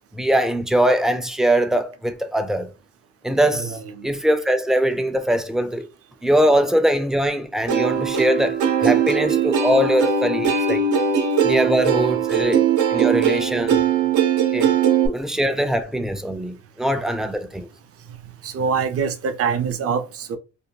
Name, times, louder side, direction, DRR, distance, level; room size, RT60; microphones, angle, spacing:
voice 1, 0.1-2.7 3.2-3.8 4.0-5.9 6.2-10.8 11.4-12.6 12.9-13.8 14.5-14.7 15.1-17.7, right 1 dB, ahead, 0.3 m, -21 dB
voice 2, 3.5-4.1 18.4-20.4, right 6 dB, 50° right, 0.5 m, -25 dB
Plucked string instrument, 7.7-15.1, right 7 dB, 85° right, 0.7 m, -20 dB
2.6 x 2.2 x 2.8 m
cardioid pair, 90°, 30 cm